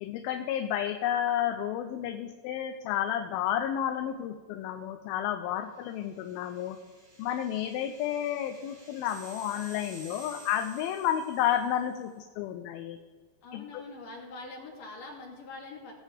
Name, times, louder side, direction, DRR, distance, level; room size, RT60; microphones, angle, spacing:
voice 1, 0.0-6.8 7.2-13.0 13.5-13.8, left 10 dB, 85° left, 6 dB, 2.5 m, -31 dB
sound 1, 5.9-11.9, right 2 dB, 30° right, 1.2 m, -52 dB
voice 2, 13.4-15.9, left 3 dB, 65° left, -2 dB, 3.7 m, -44 dB
18.5 x 8.2 x 3.4 m, 1.4 s
omnidirectional pair, 4.3 m